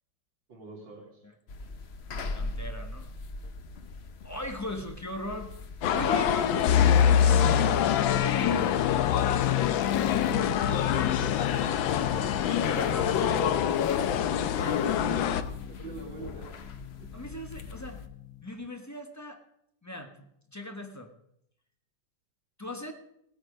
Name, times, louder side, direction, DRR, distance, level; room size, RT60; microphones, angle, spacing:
voice 1, 0.5-1.2 10.6-11.7 12.2-12.3 13.1-14.1 15.7-16.5 17.0-17.1, right 3 dB, 70° right, -1 dB, 3.6 m, -42 dB
sound 1, 1.5-18.1, left 3 dB, 50° left, 0.7 m, -42 dB
voice 2, 2.3-3.1 4.2-5.5 5.9-8.7 12.5-13.6 14.6-14.9 17.1-18.0 18.4-19.4 19.8-21.1 22.6-22.9, left 1 dB, 10° left, 5 dB, 0.9 m, -38 dB
sound 2, 5.8-15.4, left 10 dB, 85° left, 1.5 m, -27 dB
sound 3, 6.7-16.4 16.7-16.8 17.3-17.6, left 8 dB, 70° left, 1.1 m, -28 dB
17.0 x 8.9 x 5.2 m, 0.76 s
omnidirectional pair, 2.1 m